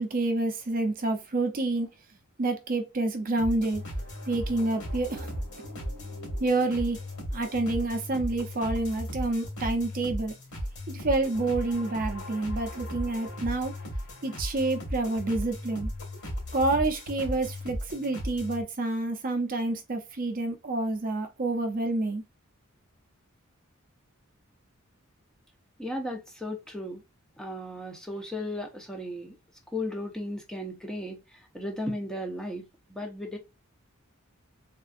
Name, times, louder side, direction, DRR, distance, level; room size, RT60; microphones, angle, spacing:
voice 1, 0.0-1.9 2.4-3.8 4.3-5.4 6.4-7.0 7.3-10.3 10.9-13.7 14.2-15.9 16.5-22.2, right 2 dB, 40° right, 0.5 m, -28 dB
sound 1, 3.4-18.6, equal, 90° left, 2.1 m, -36 dB
voice 2, 25.8-27.0 27.4-29.4 29.7-33.4, left 1 dB, 5° left, 0.6 m, -35 dB
3.5 x 2.4 x 2.4 m
head